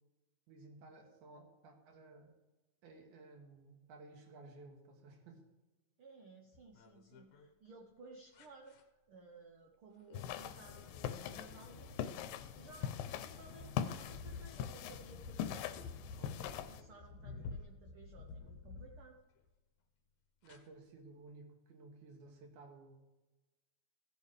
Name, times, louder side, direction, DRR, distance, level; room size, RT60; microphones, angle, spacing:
voice 1, 0.5-2.3 2.8-5.4 16.2-16.3 20.4-23.0, right 3 dB, 70° right, 3 dB, 2.8 m, -56 dB
voice 2, 6.0-8.8 9.1-12.0 12.5-15.6 16.1-19.2, right 3 dB, 85° right, 2 dB, 1.2 m, -58 dB
sound 1, 6.5-7.5 8.3-8.8 10.1-10.3 10.7-19.5 20.4-20.6, left 4 dB, 65° left, 1.7 m, -52 dB
sound 2, 10.1-16.8, left 9 dB, 90° left, 2.4 m, -42 dB
16.0 x 8.2 x 3.3 m, 1.1 s
omnidirectional pair, 3.9 m